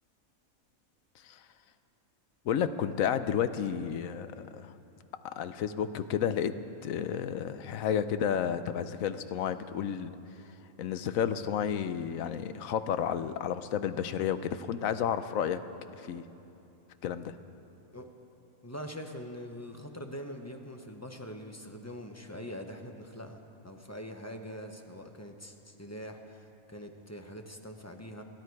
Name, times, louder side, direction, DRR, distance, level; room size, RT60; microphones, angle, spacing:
voice 1, 2.4-4.7 5.4-6.5 6.8-10.1 10.8-15.6 15.9-16.2 17.0-17.4, left 8 dB, 75° left, 12 dB, 1.1 m, -31 dB
voice 2, 18.6-28.2, equal, 15° left, 4 dB, 0.8 m, -43 dB
29.5 x 10.5 x 4.7 m, 2.8 s
omnidirectional pair, 1.5 m